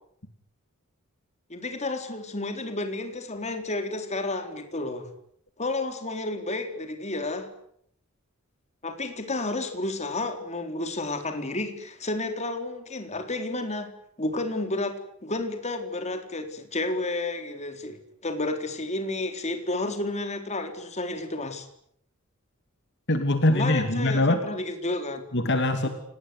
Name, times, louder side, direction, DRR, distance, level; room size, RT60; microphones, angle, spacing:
voice 1, 1.5-5.1 5.6-7.5 8.8-21.7 23.5-25.3, left 2 dB, 30° left, 6 dB, 4.0 m, -31 dB
voice 2, 23.1-24.4 25.3-25.9, left 1 dB, 55° left, 7 dB, 2.8 m, -23 dB
29.0 x 20.0 x 9.6 m, 0.70 s
head